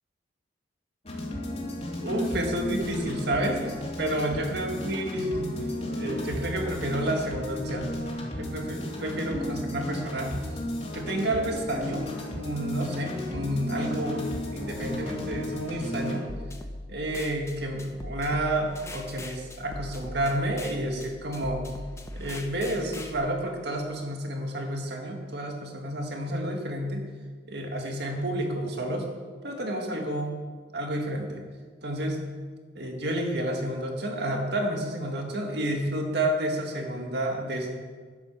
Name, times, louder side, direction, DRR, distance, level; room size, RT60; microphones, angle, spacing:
sound 1, 1.0-16.2, left 1 dB, 35° left, 2.6 m, -34 dB
voice 1, 2.0-3.6 4.0-5.5 5.9-8.0 8.4-10.4 10.9-12.1 12.3-16.2 16.9-21.6 22.2-27.1 27.5-29.1 29.4-30.4 30.7-31.4 31.8-32.2 32.7-37.8, right 1 dB, 60° right, 2 dB, 2.1 m, -30 dB
sound 2, 16.3-23.1, left 1 dB, 15° left, 1.0 m, -40 dB
11.0 x 10.5 x 6.9 m, 1.5 s
head